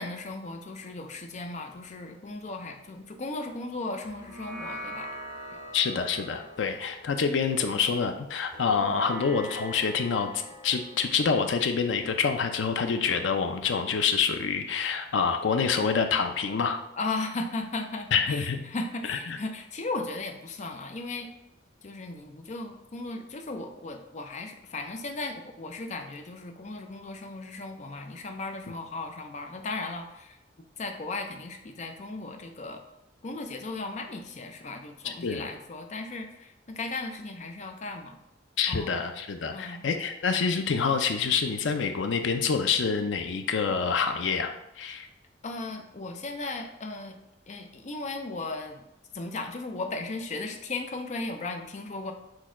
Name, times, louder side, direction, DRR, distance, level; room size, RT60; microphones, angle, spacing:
voice 1, 0.0-5.1 17.0-21.3 21.8-30.4 30.8-32.8 33.2-38.2 38.7-38.9 39.5-39.8 45.4-47.2 47.5-48.8 49.1-52.1, left 3 dB, 40° left, 5 dB, 0.5 m, -36 dB
sound 1, 4.0-12.7, equal, 60° right, 1.5 m, -44 dB
voice 2, 5.7-16.8 18.1-18.7 19.1-19.4 35.0-35.5 38.6-44.5 44.8-45.1, left 5 dB, 90° left, 6 dB, 0.5 m, -27 dB
6.2 x 2.3 x 3.6 m, 0.85 s
head